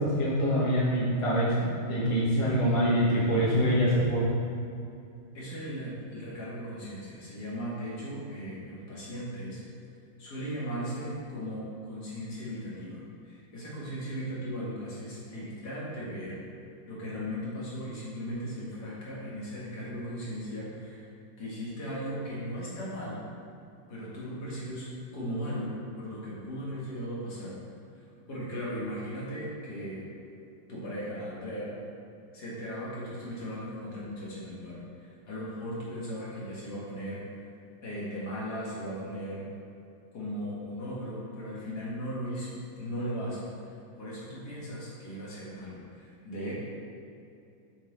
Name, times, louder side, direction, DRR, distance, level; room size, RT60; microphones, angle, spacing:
voice 1, 0.0-4.3, equal, 20° left, -7 dB, 0.9 m, -25 dB
voice 2, 5.3-9.6 10.2-16.4 16.9-21.1 21.4-23.2 23.9-27.5 27.9-28.0 28.3-30.1 30.7-31.7 32.3-37.2 37.8-39.4 40.1-46.5, equal, 55° left, -7 dB, 2.0 m, -37 dB
7.6 x 4.1 x 3.9 m, 2.6 s
omnidirectional pair, 2.2 m